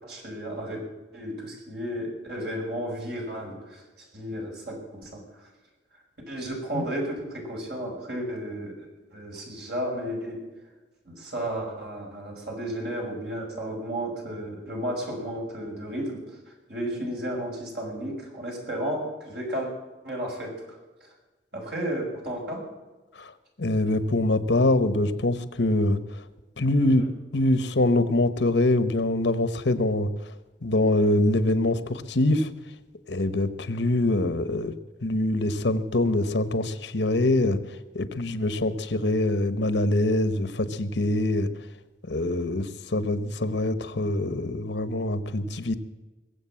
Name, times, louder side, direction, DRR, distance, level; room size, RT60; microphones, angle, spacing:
voice 1, 0.0-0.8 1.1-3.8 4.1-5.5 6.3-10.5 11.0-16.4 16.7-19.7 20.0-21.1 21.5-22.7 26.7-27.1, right 1 dB, 60° right, -1 dB, 6.1 m, -33 dB
voice 2, 23.6-26.2 26.6-27.0 27.3-30.1 30.6-32.5 33.1-34.7 35.0-37.6 37.9-41.5 42.1-45.8, left 1 dB, 75° left, 13 dB, 1.1 m, -24 dB
22.0 x 7.8 x 7.5 m, 1.2 s
head